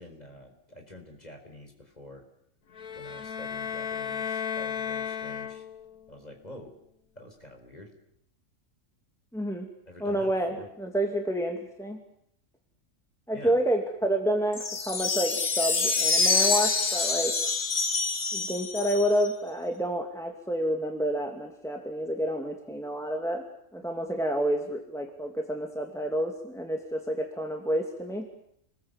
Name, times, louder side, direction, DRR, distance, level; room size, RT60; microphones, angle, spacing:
voice 1, 0.0-2.2 2.9-5.7 6.1-6.7 7.1-7.9 9.9-10.7 13.3-13.6, left 1 dB, 30° left, 3 dB, 4.9 m, -47 dB
sound 1, 2.7-6.0, left 7 dB, 85° left, 1.7 m, -34 dB
voice 2, 9.3-9.7 10.0-12.0 13.3-17.3 18.3-23.4 23.7-28.3, equal, ahead, 3 dB, 2.4 m, -29 dB
sound 2, 14.5-19.3, left 4 dB, 50° left, 1.8 m, -26 dB
28.5 x 21.0 x 8.2 m, 0.73 s
omnidirectional pair, 1.5 m